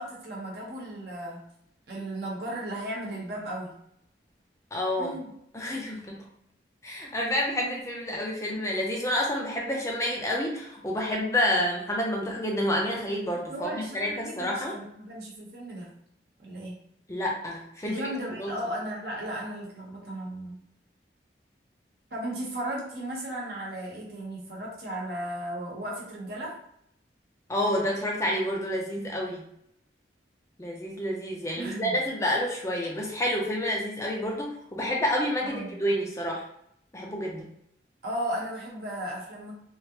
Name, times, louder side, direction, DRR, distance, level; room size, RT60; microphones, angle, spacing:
voice 1, 0.0-1.4 1.9-3.8 5.0-5.3 7.1-7.2 13.3-15.9 16.4-16.8 17.8-20.6 22.1-26.6 31.6-32.0 35.4-35.8 38.0-39.5, right 1 dB, 55° right, -3 dB, 0.9 m, -35 dB
voice 2, 4.7-5.2 5.5-6.2 6.8-14.8 17.1-18.0 18.4-18.6 27.5-29.5 30.6-36.4 36.9-37.5, left 1 dB, 15° left, -2 dB, 0.5 m, -29 dB
3.1 x 2.5 x 2.9 m, 0.75 s
head